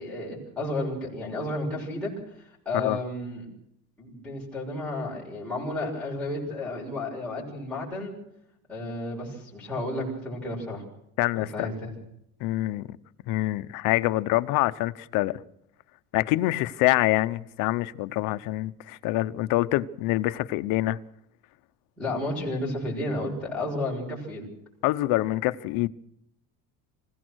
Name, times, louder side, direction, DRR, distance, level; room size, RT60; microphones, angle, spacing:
voice 1, 0.0-2.1 2.4-3.5 4.0-8.1 8.7-10.8 11.3-11.9 22.0-24.4, left 1 dB, 5° left, 6.5 m, -32 dB
voice 2, 11.2-11.7 12.4-13.0 13.3-15.4 16.1-21.0 24.8-25.9, left 18 dB, 60° left, 1.0 m, -25 dB
27.0 x 16.5 x 6.3 m
cardioid pair, 175°, 36 cm